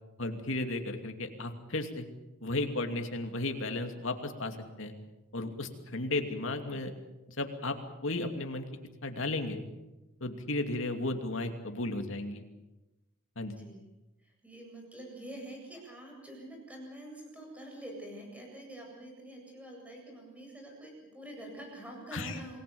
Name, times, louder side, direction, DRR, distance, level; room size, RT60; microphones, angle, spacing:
voice 1, 0.2-2.0 2.4-4.9 5.3-6.9 7.4-7.8 8.0-8.7 9.0-9.6 10.2-12.4 13.4-13.5 22.1-22.4, left 2 dB, 65° left, 5 dB, 2.7 m, -34 dB
voice 2, 13.5-13.9 14.2-22.6, right 1 dB, 5° right, 0 dB, 7.9 m, -46 dB
28.0 x 20.0 x 7.1 m, 1.0 s
head